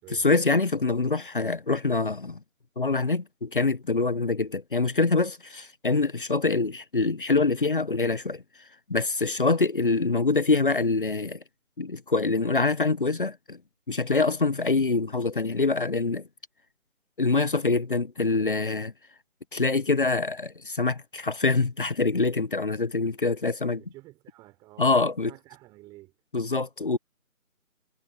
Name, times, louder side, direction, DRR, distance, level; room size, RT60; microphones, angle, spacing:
voice 1, 0.1-2.4 2.8-8.4 8.9-11.4 11.8-13.6 13.9-16.3 17.2-18.9 19.5-23.8 24.8-25.3 26.3-27.0, left 3 dB, 35° left, 1.0 m, -25 dB
voice 2, 23.8-26.1, right 19 dB, 10° right, 5.8 m, -50 dB
figure-of-eight pair, 160°, 43 cm